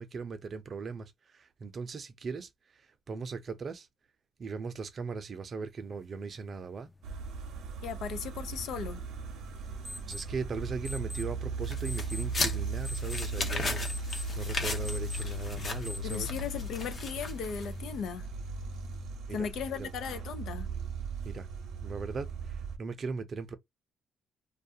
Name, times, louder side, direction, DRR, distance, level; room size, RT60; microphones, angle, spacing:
voice 1, 0.0-3.9 4.4-6.9 10.1-16.3 19.3-19.5 19.8-19.9 21.2-21.5 21.8-23.6, right 4 dB, 45° right, 0.5 m, -39 dB
sound 1, 5.8-16.2, left 1 dB, 20° left, 0.5 m, -48 dB
sound 2, 7.0-22.8, right 3 dB, 85° right, 0.7 m, -37 dB
voice 2, 7.8-9.0 16.0-18.3 19.3-20.7, left 7 dB, 80° left, 0.4 m, -37 dB
sound 3, 11.6-17.9, left 3 dB, 45° left, 0.7 m, -37 dB
2.3 x 2.3 x 2.7 m
cardioid pair, 90°, 0 cm